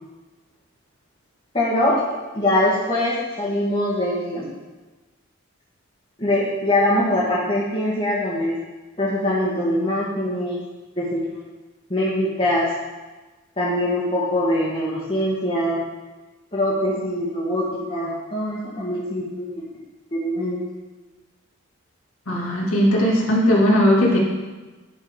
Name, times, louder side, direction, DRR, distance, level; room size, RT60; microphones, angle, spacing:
voice 1, 1.5-2.0 2.3-4.5 6.2-8.6 9.0-10.6 11.0-11.5 11.9-12.7 13.6-15.8 16.5-19.6 20.1-20.6, left 1 dB, 30° left, -10 dB, 1.8 m, -23 dB
voice 2, 22.3-24.2, equal, 80° left, -4 dB, 2.2 m, -18 dB
11.5 x 4.4 x 5.3 m, 1.2 s
head